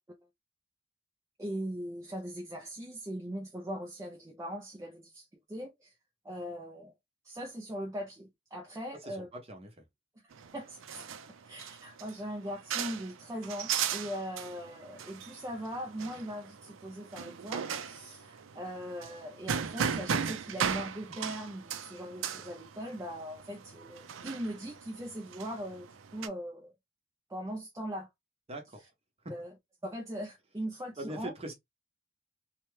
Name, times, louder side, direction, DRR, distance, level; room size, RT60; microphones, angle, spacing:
voice 1, 1.4-5.9 6.2-6.9 7.2-9.3 10.5-11.0 11.5-25.9 26.1-26.7 27.3-28.1 29.3-29.5 29.8-31.3, equal, 15° right, 0.5 m, -40 dB
voice 2, 8.9-9.8 28.5-28.9 29.2-29.3 31.0-31.5, right 1 dB, 30° right, 0.9 m, -42 dB
sound 1, 10.3-26.3, right 7 dB, 75° right, 0.4 m, -37 dB
2.8 x 2.2 x 3.1 m
head